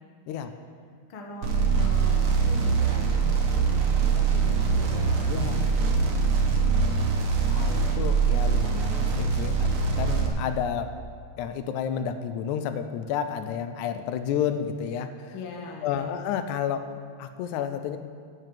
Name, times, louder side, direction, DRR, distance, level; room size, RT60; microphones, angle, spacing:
voice 1, 1.1-6.3 15.3-16.1, left 4 dB, 55° left, 0 dB, 2.0 m, -41 dB
sound 1, 1.4-10.3, right 5 dB, 60° right, 1.7 m, -23 dB
voice 2, 7.5-9.7 10.0-10.9 11.4-15.3 15.8-16.9 17.2-18.0, left 8 dB, 90° left, 9 dB, 2.0 m, -30 dB
8.2 x 7.4 x 7.8 m, 2.2 s
omnidirectional pair, 3.3 m